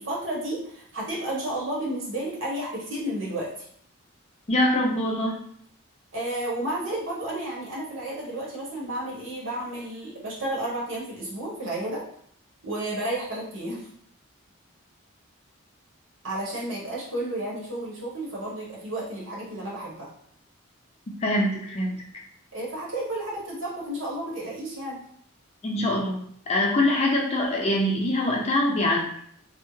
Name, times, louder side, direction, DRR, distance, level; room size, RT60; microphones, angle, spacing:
voice 1, 0.0-3.7 6.1-12.1 12.6-13.9 16.2-20.1 22.5-25.0, right 1 dB, 65° right, -5 dB, 1.2 m, -32 dB
voice 2, 4.5-5.4 21.2-22.0 25.6-29.1, left 1 dB, 30° left, -1 dB, 0.4 m, -24 dB
3.3 x 2.1 x 3.1 m, 0.64 s
head